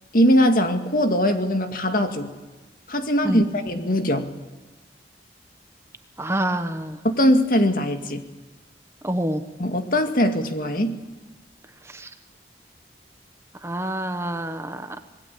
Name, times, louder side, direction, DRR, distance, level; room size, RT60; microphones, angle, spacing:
voice 1, 0.1-2.3 2.9-4.3 7.0-8.2 9.6-11.0, equal, 50° left, 6 dB, 2.2 m, -21 dB
voice 2, 6.2-7.0 9.0-9.4 11.9-12.1 13.6-15.0, right 1 dB, 15° right, 8 dB, 1.2 m, -27 dB
26.5 x 20.5 x 8.6 m, 1.2 s
head